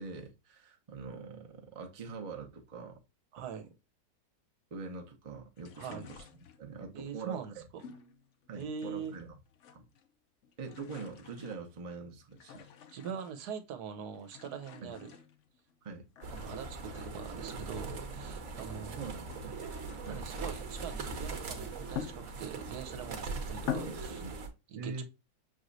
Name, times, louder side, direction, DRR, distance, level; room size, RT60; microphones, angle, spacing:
voice 1, 0.0-3.0 3.4-3.5 4.7-6.2 6.6-7.7 8.5-9.4 9.7-9.8 10.6-12.7 14.8-14.9 15.8-16.1 19.0-19.6 20.0-20.3 23.8-24.3 24.7-25.0, right 4 dB, 30° right, 0.6 m, -43 dB
voice 2, 3.3-3.6 5.8-6.1 6.9-7.8 8.5-9.1 12.6-15.1 16.3-19.0 20.1-24.2 24.7-25.0, right 7 dB, 80° right, 1.3 m, -43 dB
sound 1, 5.6-6.8 7.8-9.3 9.5-10.1 10.4-13.5 14.1-15.8 16.2-18.8 19.2-22.7 23.2-23.3 23.6-24.3, left 8 dB, 60° left, 0.8 m, -46 dB
sound 2, 16.2-24.5, right 3 dB, 60° right, 1.2 m, -41 dB
6.3 x 3.0 x 2.6 m
omnidirectional pair, 1.7 m